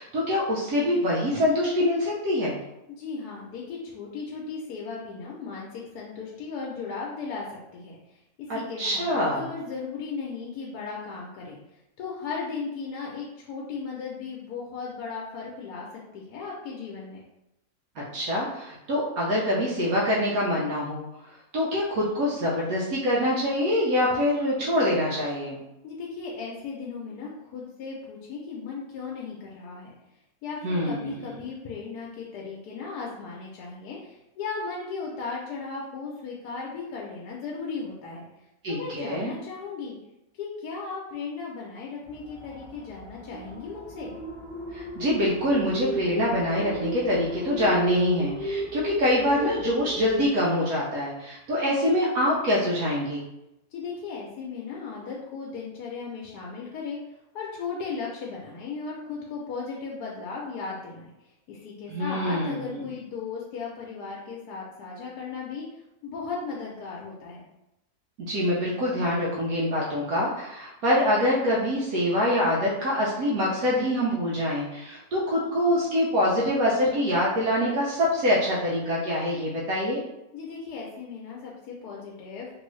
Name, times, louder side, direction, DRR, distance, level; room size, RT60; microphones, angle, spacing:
voice 1, 0.0-2.6 8.5-9.5 18.0-21.0 21.5-25.6 30.6-31.3 38.6-39.3 44.7-53.2 61.9-62.8 68.2-80.0, left 1 dB, 75° right, -5 dB, 1.1 m, -25 dB
voice 2, 2.9-11.6 12.0-17.2 25.8-29.9 30.4-38.3 38.7-40.0 40.4-44.1 53.7-65.7 66.0-67.4 80.3-82.5, left 4 dB, 85° left, -3 dB, 1.1 m, -36 dB
sound 1, 42.1-50.3, equal, 40° left, 1.3 m, -34 dB
3.0 x 2.7 x 3.1 m, 0.89 s
omnidirectional pair, 1.6 m